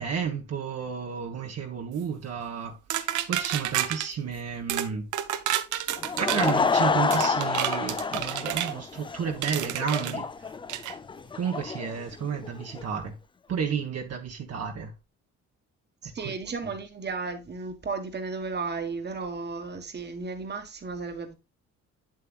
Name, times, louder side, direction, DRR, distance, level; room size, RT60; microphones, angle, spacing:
voice 1, 0.0-5.1 6.2-10.3 11.3-13.2 13.5-14.9 16.2-16.3, right 6 dB, 55° right, 1.2 m, -32 dB
sound 1, 2.9-4.1 4.7-4.9 5.1-6.6 7.1-8.7 9.4-10.1 10.7-10.9, right 12 dB, 80° right, 0.7 m, -29 dB
Laughter / Crowd, 5.9-12.8, left 5 dB, 15° left, 0.3 m, -29 dB
voice 2, 16.0-21.4, right 4 dB, 35° right, 1.4 m, -34 dB
7.6 x 7.5 x 2.4 m
cardioid pair, 90°, 30 cm